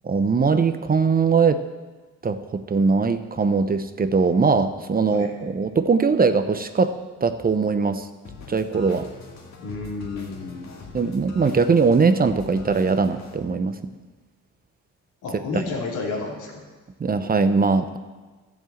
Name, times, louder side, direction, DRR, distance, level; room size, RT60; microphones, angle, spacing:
voice 1, 0.0-1.6 2.2-6.9 7.2-8.1 8.5-9.1 10.9-13.8 17.0-18.0, right 4 dB, 30° right, 10 dB, 0.8 m, -21 dB
sound 1, 8.2-13.3, left 4 dB, 60° left, 2.3 m, -43 dB
voice 2, 9.6-10.7 15.2-16.6, left 3 dB, 85° left, -2 dB, 3.2 m, -31 dB
12.5 x 7.4 x 7.8 m, 1.3 s
cardioid pair, 90°, 30 cm